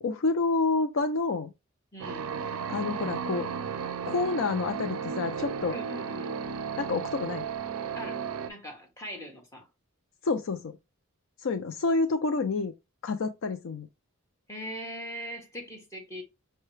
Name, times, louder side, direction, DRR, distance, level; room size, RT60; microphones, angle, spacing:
voice 1, 0.0-1.5 2.7-3.5 4.1-5.8 6.8-7.5 10.2-10.7 11.4-12.7 13.0-13.9, left 3 dB, 60° left, 0.4 m, -28 dB
voice 2, 1.9-2.3 5.7-6.4 7.9-9.7 14.5-16.2, equal, 15° left, 1.4 m, -41 dB
sound 1, 2.0-8.5, right 6 dB, 75° right, 0.4 m, -34 dB
5.5 x 2.2 x 3.2 m
head